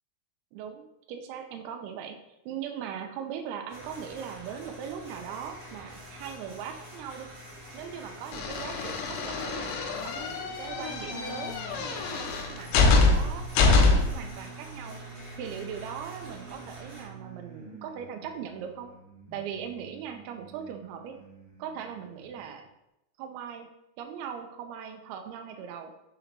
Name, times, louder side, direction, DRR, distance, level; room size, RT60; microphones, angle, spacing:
voice 1, 0.5-2.2 2.5-7.3 7.7-9.7 10.0-15.0 15.4-18.9 19.3-21.2 21.6-22.7 23.2-23.7 24.0-25.9, right 8 dB, 85° right, 5 dB, 2.4 m, -40 dB
sound 1, 3.7-17.0, equal, 45° right, 2.3 m, -47 dB
sound 2, 8.3-14.2, left 3 dB, 90° left, 2.9 m, -25 dB
sound 3, 10.6-22.5, right 5 dB, 65° right, 1.4 m, -48 dB
6.5 x 3.9 x 4.4 m, 0.86 s
omnidirectional pair, 5.0 m